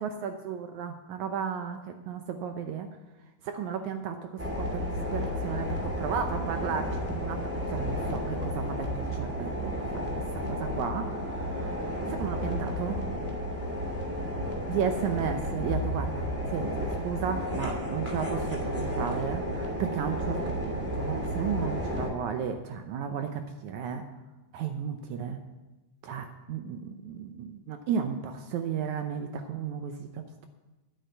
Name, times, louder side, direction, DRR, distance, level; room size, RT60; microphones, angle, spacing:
voice 1, 0.0-2.9 3.4-10.1 10.5-13.0 14.7-20.4 20.6-24.0 24.5-25.4 26.0-30.5, right 7 dB, 75° right, 7 dB, 1.7 m, -34 dB
sound 1, 4.4-22.1, equal, 5° right, 1.9 m, -32 dB
10.0 x 8.8 x 8.0 m, 1.1 s
omnidirectional pair, 4.1 m